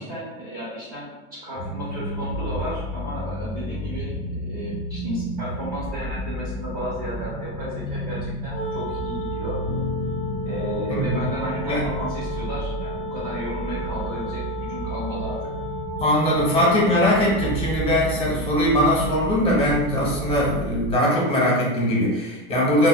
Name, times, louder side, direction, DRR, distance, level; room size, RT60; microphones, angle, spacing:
voice 1, 0.0-9.6 10.4-14.4 14.7-15.3, equal, 30° right, -8 dB, 0.9 m, -33 dB
sound 1, 1.5-21.0, right 1 dB, 80° right, 1.0 m, -32 dB
Wind instrument woodwind instrument, 8.4-17.7, left 2 dB, ahead, 1.1 m, -34 dB
sound 2, 9.7-13.7, left 5 dB, 85° left, 0.5 m, -35 dB
voice 2, 16.0-22.9, equal, 20° left, -3 dB, 0.9 m, -21 dB
3.3 x 2.3 x 2.2 m, 1.1 s
supercardioid pair, 130°, 30 cm